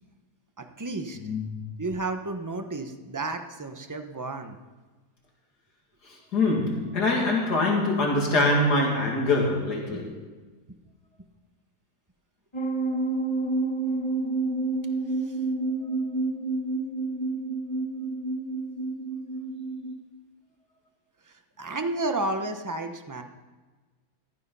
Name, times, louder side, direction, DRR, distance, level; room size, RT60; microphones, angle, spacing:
voice 1, 0.6-1.3 1.8-4.6 9.9-10.0 14.8-14.9 15.3-15.4 21.3-23.2, right 2 dB, 15° right, 6 dB, 0.8 m, -32 dB
voice 2, 6.3-10.2, left 2 dB, 75° left, -1 dB, 2.9 m, -24 dB
sound 1, 12.5-20.0, right 3 dB, 20° left, 1.5 m, -29 dB
15.0 x 13.0 x 5.6 m, 1.3 s
omnidirectional pair, 1.8 m